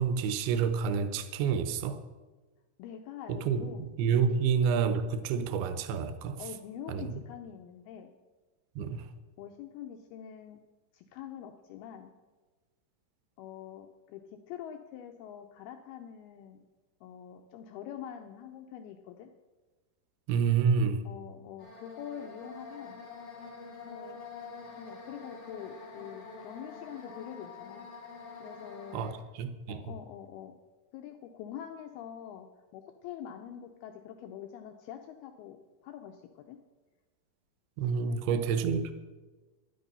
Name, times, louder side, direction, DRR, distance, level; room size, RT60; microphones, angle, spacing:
voice 1, 0.0-2.0 3.3-6.4 6.9-7.1 8.8-9.1 20.3-21.1 28.9-30.0 37.8-38.9, right 6 dB, 75° right, 10 dB, 2.4 m, -29 dB
voice 2, 2.8-3.8 6.4-8.1 9.4-10.6 10.9-12.1 13.4-16.6 17.0-19.3 21.1-23.0 23.3-23.5 23.8-24.2 24.8-27.9 28.4-29.1 29.7-30.6 30.9-36.6 38.0-38.7, left 9 dB, 90° left, 5 dB, 2.2 m, -45 dB
sound 1, 21.6-29.1, left 4 dB, 30° left, 1.9 m, -46 dB
11.0 x 11.0 x 5.5 m, 1.2 s
omnidirectional pair, 5.2 m